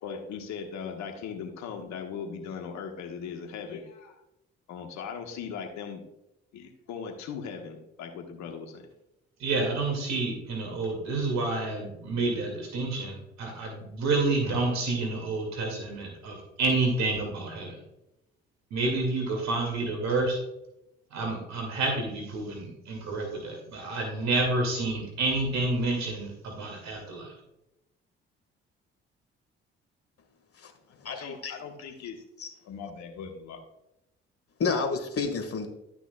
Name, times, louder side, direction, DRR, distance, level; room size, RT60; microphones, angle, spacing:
voice 1, 0.0-4.2 4.7-6.0 6.5-8.9 31.2-32.2 32.6-33.6, left 6 dB, 70° left, 4 dB, 1.4 m, -39 dB
voice 2, 9.4-17.8 18.7-20.4 21.1-27.3, right 3 dB, 65° right, 1 dB, 2.3 m, -29 dB
voice 3, 31.0-31.5 32.4-32.5 34.6-35.7, left 4 dB, 50° left, 6 dB, 1.8 m, -30 dB
12.0 x 6.0 x 2.3 m, 0.87 s
hypercardioid pair, 45°, 30 cm